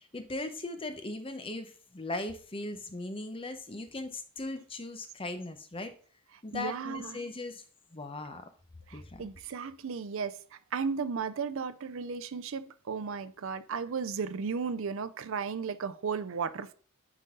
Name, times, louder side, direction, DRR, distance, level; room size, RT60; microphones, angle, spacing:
voice 1, 0.1-5.9 6.4-7.6 7.9-8.5 8.9-9.2, left 2 dB, 25° left, 0.8 m, -38 dB
voice 2, 6.5-7.2 8.9-16.7, right 5 dB, 65° right, 0.5 m, -35 dB
9.4 x 3.9 x 3.7 m
head